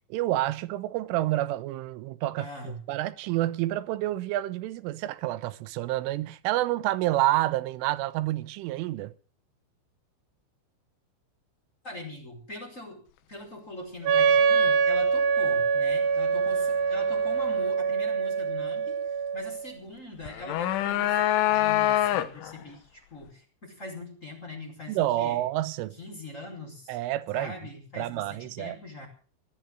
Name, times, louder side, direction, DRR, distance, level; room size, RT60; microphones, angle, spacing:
voice 1, 0.1-9.1 24.9-26.0 26.9-27.6 28.0-28.8, right 15 dB, 90° right, 3.4 m, -29 dB
voice 2, 2.4-2.8 11.8-13.0 13.3-25.4 26.0-27.0 27.3-29.1, left 1 dB, 15° left, 4.7 m, -42 dB
Wind instrument woodwind instrument, 14.0-19.7, right 5 dB, 65° right, 3.6 m, -24 dB
sound 1, 20.2-22.6, left 13 dB, 80° left, 3.6 m, -25 dB
18.0 x 12.0 x 6.3 m
omnidirectional pair, 5.5 m